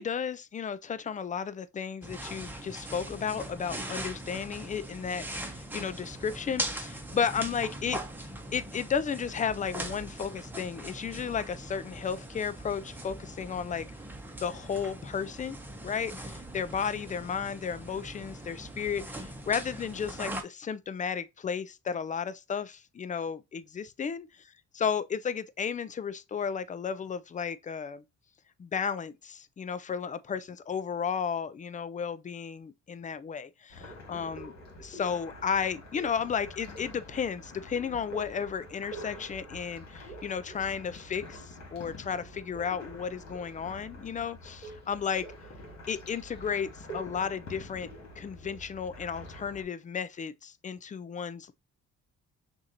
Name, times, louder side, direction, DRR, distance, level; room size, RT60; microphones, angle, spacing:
voice 1, 0.0-8.0 8.5-13.9 14.4-15.6 15.8-24.3 24.7-28.0 28.6-34.5 34.8-45.3 45.9-47.9 48.2-51.5, left 7 dB, 25° left, 0.4 m, -33 dB
sound 1, 2.0-20.4, right 1 dB, 5° right, 0.9 m, -41 dB
sound 2, 33.7-49.6, equal, 60° left, 1.9 m, -46 dB
6.1 x 2.6 x 2.8 m
cardioid pair, 90°, 30 cm